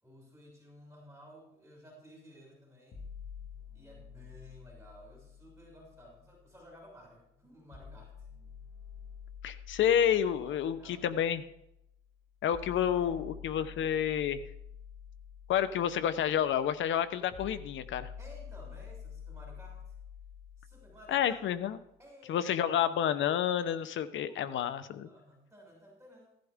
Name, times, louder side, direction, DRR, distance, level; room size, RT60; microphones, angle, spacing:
voice 1, 0.0-3.1 3.7-8.2 10.4-11.2 12.9-13.2 13.6-13.8 18.2-19.9 20.6-21.4 22.0-22.8 24.3-24.7 25.0-26.3, equal, 10° right, -4 dB, 6.1 m, -55 dB
sound 1, 2.9-6.9 7.7-21.7, left 7 dB, 55° left, 1.8 m, -49 dB
voice 2, 9.4-11.4 12.4-14.4 15.5-18.1 21.1-21.8 22.3-25.1, left 9 dB, 75° left, 14 dB, 0.9 m, -29 dB
16.0 x 11.5 x 3.7 m, 0.80 s
cardioid pair, 90°, 20 cm